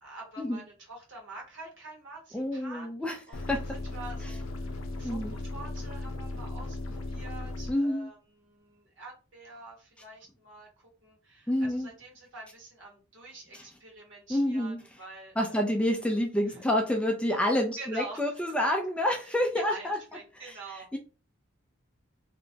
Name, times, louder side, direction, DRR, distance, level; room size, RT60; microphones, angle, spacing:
voice 1, 0.0-3.0 3.3-3.4 3.7-10.7 11.0-15.6 16.5-16.6 17.8-18.4 19.5-21.0, right 2 dB, 60° right, -1 dB, 1.2 m, -46 dB
voice 2, 2.3-3.6 5.0-5.3 7.7-8.1 11.5-11.9 13.5-13.6 14.3-14.8 15.4-20.0 20.4-20.6 20.9-21.0, left 1 dB, 5° left, 2 dB, 0.3 m, -28 dB
sound 1, 3.3-7.7, left 2 dB, 80° left, 0.5 m, -36 dB
2.9 x 2.2 x 2.7 m, 0.33 s
head